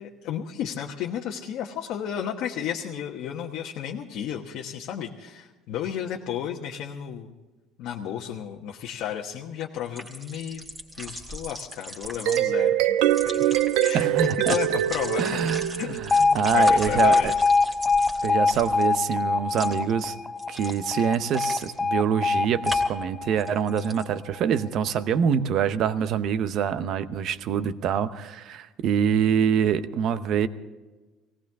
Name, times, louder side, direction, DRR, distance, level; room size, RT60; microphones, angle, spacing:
voice 1, 0.0-7.3 7.8-10.6 11.0-13.0 13.2-13.5 13.8-15.4 15.8-17.5, left 9 dB, 60° left, 0 dB, 1.2 m, -33 dB
sound 1, 9.9-12.4 13.0-19.1 19.5-19.9 20.4-21.8 22.6-23.0 23.4-24.0, right 1 dB, 15° right, 2.0 m, -38 dB
sound 2, 12.0-16.4, right 12 dB, 85° right, 0.8 m, -24 dB
voice 2, 13.9-14.6 15.2-17.3 18.2-20.1 20.5-30.5, right 8 dB, 45° right, 12 dB, 0.8 m, -25 dB
Alarm, 16.1-24.2, left 4 dB, 15° left, 0.4 m, -23 dB
18.5 x 18.0 x 3.6 m, 1.2 s
cardioid pair, 165°, 0 cm